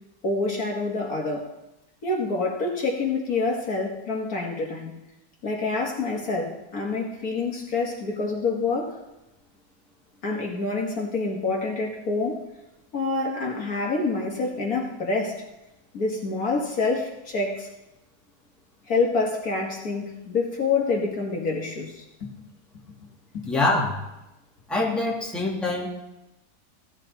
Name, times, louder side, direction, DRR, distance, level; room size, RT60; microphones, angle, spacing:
voice 1, 0.2-1.5 2.0-4.9 5.4-9.0 10.2-12.5 12.9-15.4 15.9-17.7 18.9-22.4 23.3-23.5, left 3 dB, 55° left, -1 dB, 2.2 m, -27 dB
voice 2, 23.5-24.0 24.7-25.9, left 2 dB, ahead, -4 dB, 2.1 m, -25 dB
16.0 x 12.0 x 4.1 m, 0.95 s
omnidirectional pair, 1.8 m